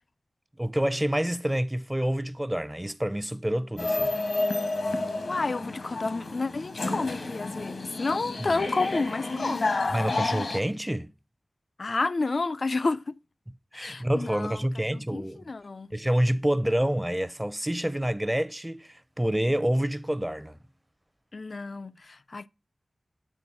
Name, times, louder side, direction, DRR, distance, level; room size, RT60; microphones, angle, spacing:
voice 1, 0.6-4.2 8.4-8.5 9.9-11.1 13.7-15.4 15.9-20.6, right 1 dB, 10° right, 0.6 m, -27 dB
sound 1, 3.8-10.6, left 2 dB, 85° left, 1.2 m, -30 dB
voice 2, 5.2-9.8 11.8-13.2 13.7-14.6 14.9-15.9 21.3-22.5, left 3 dB, 65° left, 0.4 m, -30 dB
8.9 x 3.8 x 5.9 m
wide cardioid pair, 50°, 0 cm